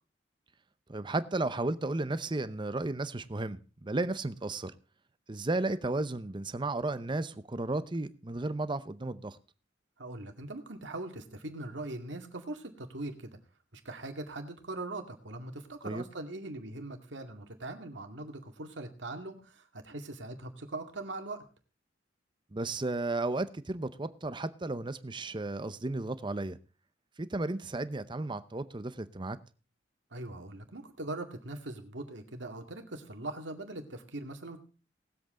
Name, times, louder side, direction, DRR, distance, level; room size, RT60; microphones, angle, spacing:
voice 1, 0.9-4.7 5.3-9.4 15.8-16.0 22.5-26.6 27.2-29.4, right 2 dB, 25° right, 0.7 m, -34 dB
voice 2, 10.0-13.4 13.7-21.4 30.1-34.6, right 2 dB, 75° right, 2.1 m, -41 dB
19.5 x 7.9 x 3.7 m
head